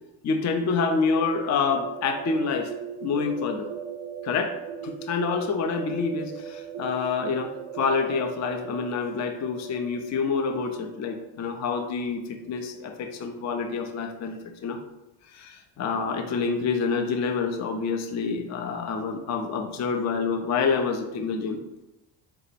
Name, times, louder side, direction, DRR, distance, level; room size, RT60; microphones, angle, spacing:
voice 1, 0.2-2.7 3.0-3.7 4.2-4.5 4.8-14.8 15.4-21.6, left 5 dB, 40° left, 5 dB, 0.4 m, -27 dB
sound 1, 0.7-12.4, right 8 dB, 85° right, 0.5 m, -39 dB
4.5 x 2.0 x 4.0 m, 0.97 s
cardioid pair, 105°, 45 cm